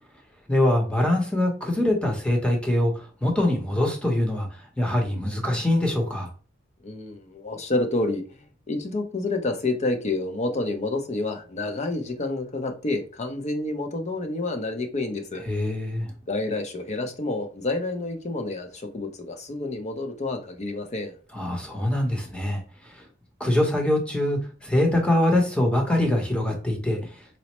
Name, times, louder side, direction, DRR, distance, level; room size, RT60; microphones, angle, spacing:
voice 1, 0.5-4.5 4.8-6.3 15.5-16.1 21.3-22.6 23.4-27.0, left 1 dB, 5° left, 1 dB, 0.8 m, -23 dB
voice 2, 6.8-15.4 16.3-21.1, left 2 dB, 35° left, 6 dB, 0.6 m, -29 dB
4.2 x 2.0 x 2.9 m, 0.39 s
head